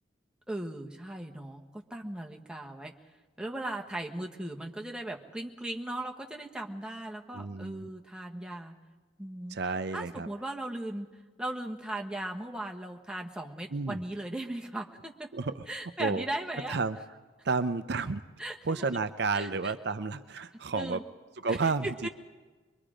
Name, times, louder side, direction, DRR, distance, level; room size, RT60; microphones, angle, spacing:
voice 1, 0.5-2.9 3.4-8.8 9.2-9.6 9.9-11.1 11.4-16.8 18.4-18.8 19.3-19.7 20.7-21.0 21.5-22.1, right 1 dB, 5° right, 1 dB, 1.3 m, -38 dB
voice 2, 7.3-7.9 9.5-10.3 13.7-14.0 15.3-15.6 16.0-16.2 16.7-17.0 17.4-18.2 18.7-21.0 21.4-22.1, right 4 dB, 60° right, 11 dB, 0.6 m, -31 dB
23.0 x 22.5 x 5.0 m, 1.3 s
head